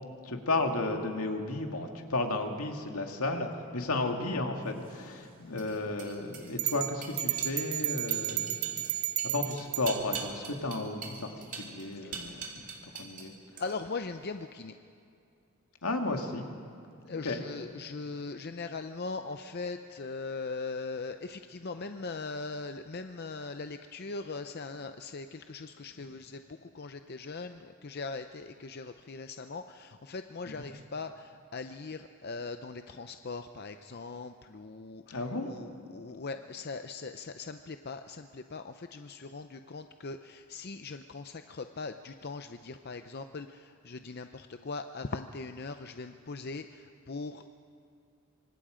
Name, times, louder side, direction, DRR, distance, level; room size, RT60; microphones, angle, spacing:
voice 1, 0.2-8.6 9.2-13.3 15.8-16.5 17.1-17.4 30.5-30.7 35.1-35.5, left 2 dB, 75° left, 3 dB, 2.1 m, -33 dB
sound 1, 4.8-13.3 13.6-14.0, right 5 dB, 35° right, 2.9 m, -44 dB
sound 2, 6.6-10.3, right 14 dB, 60° right, 0.6 m, -33 dB
voice 2, 12.0-13.0 13.6-14.7 17.0-47.5, left 3 dB, 45° left, 8 dB, 0.6 m, -40 dB
27.0 x 25.0 x 5.1 m, 2.4 s
head